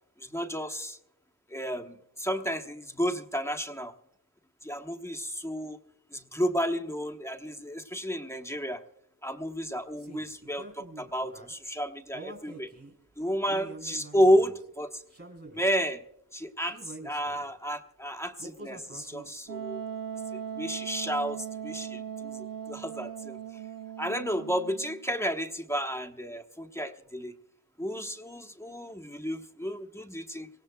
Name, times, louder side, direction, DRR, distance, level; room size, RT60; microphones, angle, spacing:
voice 1, 0.2-1.0 1.5-3.9 4.6-5.8 6.1-8.8 9.2-12.7 13.2-15.0 15.5-16.0 16.3-19.8 20.3-23.6 24.0-27.3 27.8-30.5, equal, 5° left, 6 dB, 1.0 m, -31 dB
sound 1, 10.0-11.5 12.1-13.0 13.4-14.7 15.1-15.8 16.7-17.5 18.4-19.5, right 2 dB, 40° right, 3.6 m, -46 dB
Wind instrument woodwind instrument, 19.5-25.0, right 8 dB, 60° right, 0.5 m, -39 dB
24.0 x 18.0 x 2.2 m, 0.78 s
wide cardioid pair, 70°, 37 cm